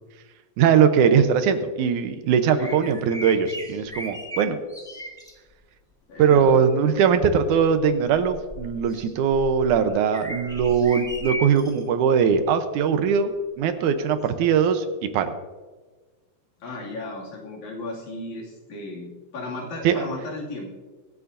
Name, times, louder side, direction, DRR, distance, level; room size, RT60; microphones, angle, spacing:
voice 1, 0.6-4.6 6.2-13.3 13.6-15.3 19.8-20.0, right 7 dB, 85° right, 8 dB, 2.4 m, -20 dB
voice 2, 2.5-2.9 6.1-6.6 16.6-20.7, left 2 dB, 75° left, -3 dB, 3.9 m, -35 dB
sound 1, 2.6-5.3 6.2-6.5 7.1-11.8 12.3-12.5 14.3-14.4, equal, 5° left, 0.6 m, -37 dB
24.5 x 8.5 x 2.7 m, 1.3 s
omnidirectional pair, 3.4 m